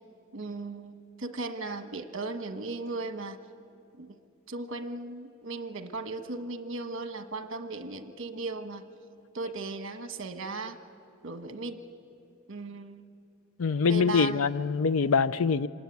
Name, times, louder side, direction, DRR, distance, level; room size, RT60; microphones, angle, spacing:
voice 1, 0.3-3.4 4.0-4.1 4.5-8.8 9.3-10.8 11.2-11.8 12.5-13.0 13.9-14.4, right 3 dB, 65° right, 1.3 m, -37 dB
voice 2, 13.6-15.7, left 5 dB, 85° left, 0.5 m, -24 dB
26.0 x 19.5 x 9.4 m
head